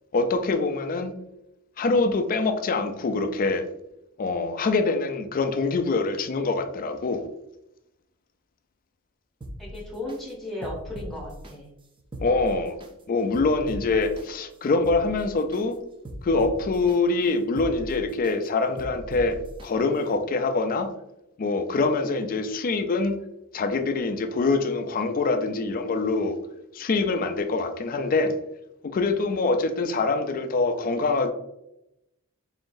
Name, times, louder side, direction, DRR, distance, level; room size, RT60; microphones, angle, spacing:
voice 1, 0.1-1.1 1.8-3.7 4.2-7.2 12.2-12.8 13.1-15.8 16.2-19.4 19.6-20.9 21.4-23.2 23.5-26.4 26.7-28.3 28.9-31.3, left 3 dB, 40° left, 8 dB, 0.4 m, -24 dB
sound 1, 9.4-10.2 10.6-11.5 12.0-12.9 13.3-14.2 14.7-15.6 16.0-17.0 17.4-18.3 18.8-19.7 20.1-20.2, equal, 25° right, 0.5 m, -39 dB
voice 2, 9.6-11.7, left 1 dB, ahead, -2 dB, 0.9 m, -35 dB
3.9 x 3.8 x 2.6 m, 0.85 s
head